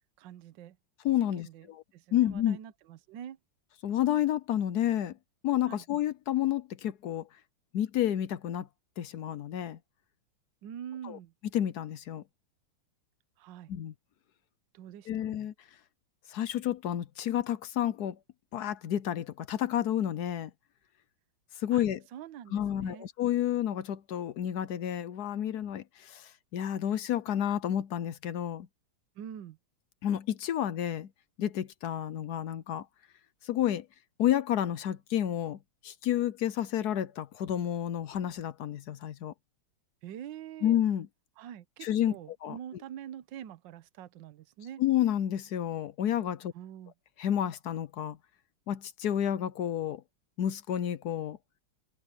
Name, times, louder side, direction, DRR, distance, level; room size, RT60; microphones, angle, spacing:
voice 1, 0.2-0.8 1.4-1.7 1.9-3.4 5.7-5.8 10.6-11.3 13.4-13.7 14.7-15.3 21.7-21.8 22.1-23.1 29.2-29.6 40.0-40.8 41.4-44.8 46.5-46.9, right 10 dB, 65° right, 1.5 m, -45 dB
voice 2, 1.0-1.8 2.1-2.6 3.8-5.2 5.4-7.3 7.7-8.7 9.0-9.8 11.0-11.2 11.5-12.2 13.7-13.9 15.1-15.5 16.3-18.2 18.5-20.5 21.6-22.0 22.5-28.7 30.0-31.1 31.4-32.9 33.4-33.9 34.2-39.3 40.6-41.1 41.8-42.1 42.4-42.6 44.8-46.5 47.2-48.2 48.7-50.0 50.4-51.4, left 11 dB, 65° left, 1.0 m, -30 dB
omnidirectional pair, 2.3 m